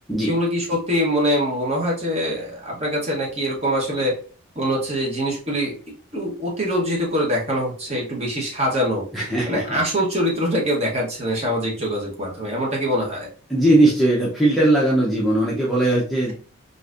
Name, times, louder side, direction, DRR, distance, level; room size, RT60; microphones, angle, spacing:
voice 1, 0.3-4.1 4.6-5.7 6.1-9.1 9.5-13.3, equal, 30° right, -2 dB, 0.9 m, -23 dB
voice 2, 9.1-9.8 13.5-16.3, right 1 dB, ahead, -7 dB, 0.5 m, -19 dB
3.9 x 2.5 x 2.4 m, 0.40 s
head